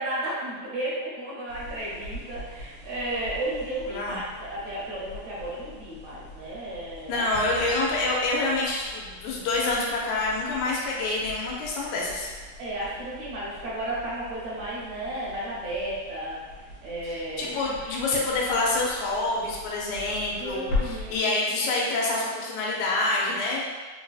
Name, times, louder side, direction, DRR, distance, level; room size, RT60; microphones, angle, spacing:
voice 1, 0.0-7.2 12.6-16.4 16.8-17.6 20.4-21.3, right 1 dB, 70° right, -7 dB, 1.8 m, -33 dB
sound 1, 1.5-21.2, left 3 dB, 60° left, 1.2 m, -41 dB
voice 2, 3.9-4.2 7.1-12.3 17.0-23.7, left 2 dB, 85° left, -3 dB, 2.1 m, -27 dB
sound 2, 7.3-9.9, right 4 dB, 85° right, 2.2 m, -47 dB
4.8 x 2.6 x 2.3 m, 1.4 s
omnidirectional pair, 3.3 m